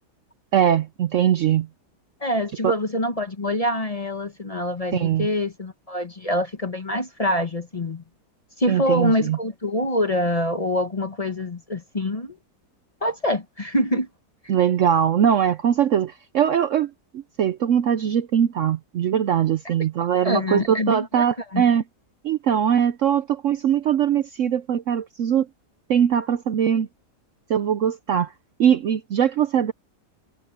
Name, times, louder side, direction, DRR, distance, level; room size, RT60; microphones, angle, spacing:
voice 1, 0.5-1.7 2.6-2.7 4.9-5.3 8.7-9.4 14.5-21.8 22.2-25.5 25.9-26.9 27.5-28.3 28.6-29.7, right 9 dB, 65° right, 0.8 m, -21 dB
voice 2, 2.2-8.0 8.6-12.4 13.0-14.1 19.6-19.7 20.2-21.2 21.5-21.6, left 1 dB, 25° left, 1.0 m, -25 dB
omnidirectional pair, 1.7 m